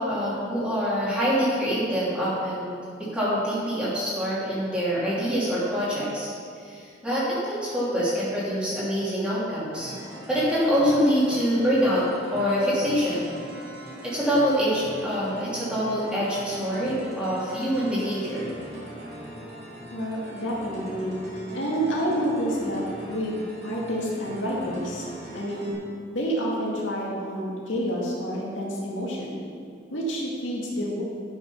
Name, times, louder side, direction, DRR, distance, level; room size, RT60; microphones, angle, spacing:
voice 1, 0.0-6.3 6.6-9.9 10.3-12.0 12.3-13.3 14.0-18.5, equal, 5° right, -9 dB, 2.9 m, -25 dB
sound 1, 9.7-25.7, right 1 dB, 55° right, 2.9 m, -41 dB
voice 2, 19.9-21.2 21.5-25.1 25.3-25.7 26.1-29.4 29.9-31.0, equal, 85° left, -4 dB, 2.1 m, -29 dB
11.5 x 6.2 x 5.7 m, 2.3 s
head